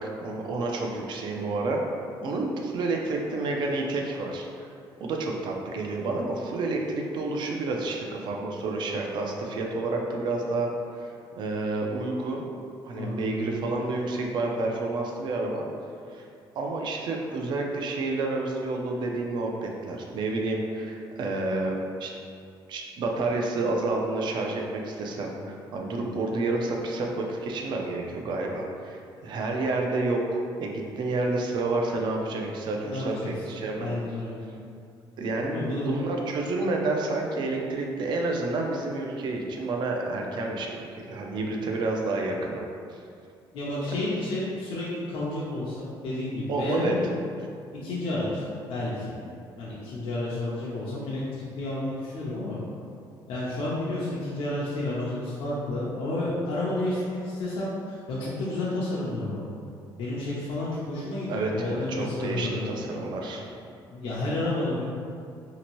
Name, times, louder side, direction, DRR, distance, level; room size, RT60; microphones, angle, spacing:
voice 1, 0.0-1.8 2.2-4.7 5.0-12.4 12.8-15.7 16.1-16.3 16.6-21.7 22.0-22.1 22.7-33.9 35.2-42.6 42.9-43.0 46.5-47.0 61.3-63.5, right 2 dB, 55° right, 1 dB, 0.4 m, -29 dB
voice 2, 12.9-13.5 32.8-33.3 33.7-34.4 35.4-35.9 43.5-47.0 47.8-48.4 48.7-49.1 49.6-51.2 51.6-52.6 53.3-59.4 60.0-62.7 63.9-64.8, left 2 dB, 75° left, -7 dB, 0.6 m, -31 dB
2.8 x 2.5 x 2.9 m, 2.4 s
cardioid pair, 120°, 9 cm